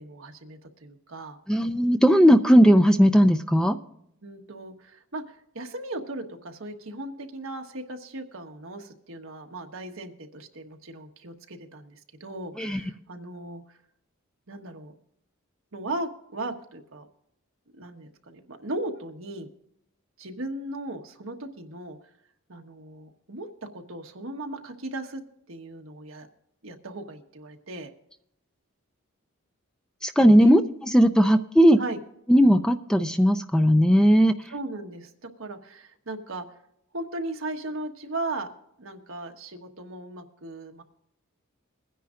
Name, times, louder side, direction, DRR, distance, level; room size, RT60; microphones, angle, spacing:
voice 1, 0.0-1.4 4.2-13.8 14.5-14.9 15.7-17.1 17.8-19.5 20.2-22.0 22.5-25.2 25.5-26.3 26.6-27.9 30.4-30.6 31.8-32.0 34.5-36.5 36.9-38.5 38.8-40.8, right 2 dB, 70° right, 4 dB, 1.3 m, -37 dB
voice 2, 1.5-3.8 12.6-12.8 30.0-31.8 32.3-34.3, equal, 5° left, 7 dB, 0.4 m, -18 dB
22.5 x 10.0 x 2.5 m, 0.74 s
head